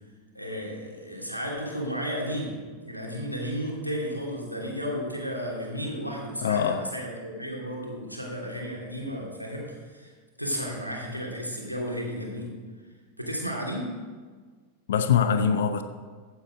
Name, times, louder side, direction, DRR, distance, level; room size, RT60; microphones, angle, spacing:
voice 1, 0.3-10.1 10.4-12.5 13.2-13.9, equal, 90° left, -2 dB, 2.8 m, -33 dB
voice 2, 6.4-6.9 14.9-15.8, left 7 dB, 60° left, 10 dB, 0.7 m, -23 dB
15.0 x 8.0 x 5.1 m, 1.5 s
figure-of-eight pair, 90°, 0 cm